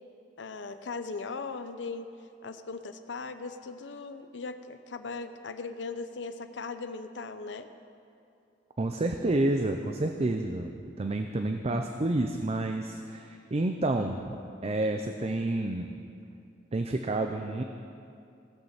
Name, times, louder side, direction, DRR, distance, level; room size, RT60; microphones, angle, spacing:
voice 1, 0.4-2.1 2.4-7.7, left 4 dB, 75° left, 9 dB, 0.6 m, -38 dB
voice 2, 8.8-10.7 11.0-15.9 16.7-17.6, right 2 dB, 35° right, 5 dB, 0.5 m, -29 dB
17.0 x 6.6 x 7.2 m, 2.5 s
head